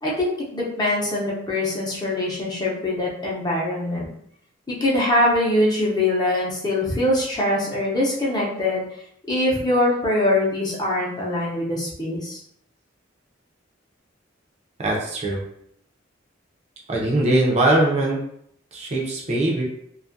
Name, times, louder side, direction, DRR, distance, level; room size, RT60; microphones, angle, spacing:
voice 1, 0.0-4.1 4.8-8.8 9.3-12.4, left 1 dB, 20° left, -5 dB, 0.7 m, -23 dB
voice 2, 14.8-15.4 16.9-18.2 18.7-19.6, right 1 dB, 35° right, -3 dB, 0.5 m, -21 dB
2.6 x 2.3 x 2.6 m, 0.69 s
head